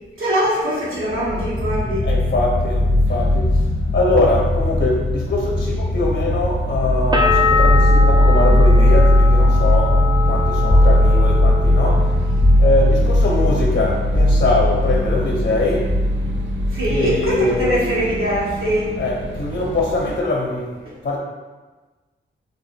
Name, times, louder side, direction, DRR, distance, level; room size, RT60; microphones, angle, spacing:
voice 1, 0.2-2.1 16.7-18.9, equal, 85° right, -6 dB, 1.4 m, -22 dB
sound 1, 1.0-18.4, left 1 dB, 15° left, 0.6 m, -17 dB
voice 2, 2.0-12.2 12.6-15.9 16.8-18.3 19.0-20.8 21.0-21.2, left 2 dB, 50° left, 0 dB, 0.7 m, -22 dB
sound 2, 3.1-20.2, right 2 dB, 60° right, 0.6 m, -32 dB
sound 3, 7.1-12.8 13.1-13.8, left 3 dB, 20° right, 0.6 m, -24 dB
3.7 x 3.0 x 4.1 m, 1.3 s
cardioid pair, 55°, 21 cm